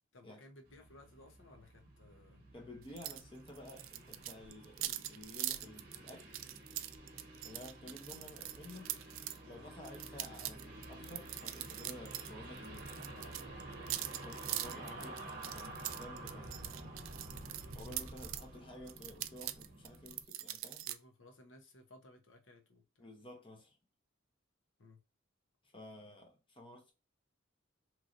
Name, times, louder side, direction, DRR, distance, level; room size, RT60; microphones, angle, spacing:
voice 1, 0.1-2.4 9.5-9.7 12.9-13.4 20.9-23.1 24.8-25.0, left 1 dB, 70° left, 0.8 m, -59 dB
sound 1, 0.6-20.2, right 2 dB, 50° right, 0.8 m, -50 dB
voice 2, 2.5-6.3 7.4-8.9 9.4-12.9 14.1-16.5 17.7-20.9 23.0-23.8 25.6-26.9, left 1 dB, 25° left, 0.8 m, -52 dB
sound 2, 3.0-3.2 3.5-9.4 9.8-12.3 12.6-18.4 18.9-21.0, right 14 dB, 80° right, 0.3 m, -42 dB
3.0 x 2.7 x 2.5 m
head